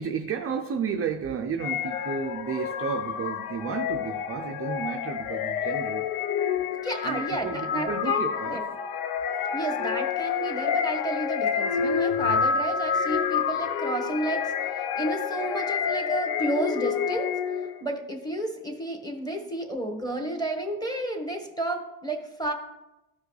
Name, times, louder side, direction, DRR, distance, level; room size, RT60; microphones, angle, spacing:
voice 1, 0.0-6.1 7.0-8.7 12.9-13.0, right 6 dB, 30° right, 5 dB, 0.5 m, -32 dB
sound 1, 1.6-17.8, left 7 dB, 85° left, 0.8 m, -28 dB
voice 2, 6.8-8.7 9.5-14.5 15.0-17.3 17.8-22.5, right 1 dB, 10° left, 2 dB, 1.4 m, -31 dB
13.5 x 4.8 x 3.2 m, 0.96 s
cardioid pair, 110°, 49 cm